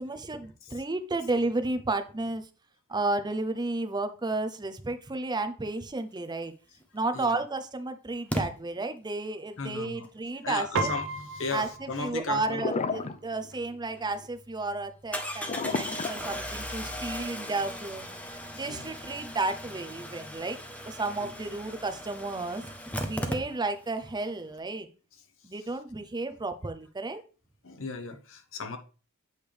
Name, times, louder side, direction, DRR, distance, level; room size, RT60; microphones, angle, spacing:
voice 1, 0.0-2.5 2.9-6.5 6.9-10.9 11.5-18.1 18.5-20.6 20.8-22.6 23.0-24.9 25.4-27.2, right 2 dB, 20° right, 0.6 m, -32 dB
Engine starting, 6.8-6.9 8.3-8.4 13.5-13.6 14.0-14.1 15.1-23.9 24.2-24.3 24.5-24.6, equal, 5° left, 0.9 m, -37 dB
voice 2, 9.6-10.1 10.4-11.0 11.3-12.6 18.7-18.9 21.2-21.3 27.6-28.8, left 4 dB, 60° left, 1.0 m, -36 dB
Piano, 10.8-20.4, right 2 dB, 60° right, 0.9 m, -40 dB
sound 1, 12.5-13.2 13.4-13.8 15.5-16.8, left 4 dB, 30° left, 0.4 m, -32 dB
8.1 x 5.1 x 3.3 m
head